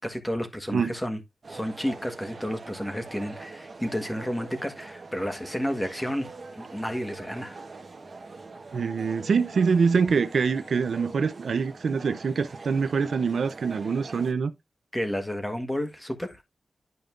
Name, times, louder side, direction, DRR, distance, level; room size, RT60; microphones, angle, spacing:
voice 1, 0.0-1.2 1.5-7.6 14.9-16.4, equal, 5° left, 1.4 m, -31 dB
sound 1, 1.4-14.3, right 3 dB, 40° right, 1.3 m, -43 dB
voice 2, 8.7-14.5, right 5 dB, 65° right, 0.6 m, -25 dB
11.0 x 5.3 x 2.5 m
wide cardioid pair, 175°, 0 cm